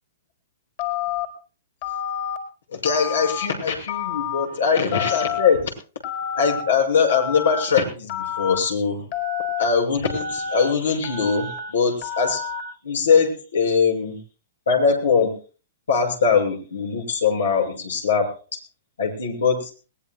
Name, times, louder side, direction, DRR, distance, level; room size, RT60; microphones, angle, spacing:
Telephone, 0.8-1.2 1.8-2.4 2.8-3.5 3.9-4.4 4.9-5.5 6.0-6.6 7.1-7.6 8.1-8.6 9.1-9.6 10.0-10.6 11.0-11.6 12.0-12.6, left 9 dB, 50° left, 4.3 m, -28 dB
voice 1, 2.7-5.7 6.3-9.0 9.6-12.4 12.8-14.2 14.7-15.3 15.9-18.3 19.0-19.7, left 5 dB, 90° left, 2 dB, 6.5 m, -21 dB
22.0 x 19.0 x 2.3 m, 0.36 s
hypercardioid pair, 135°, 0 cm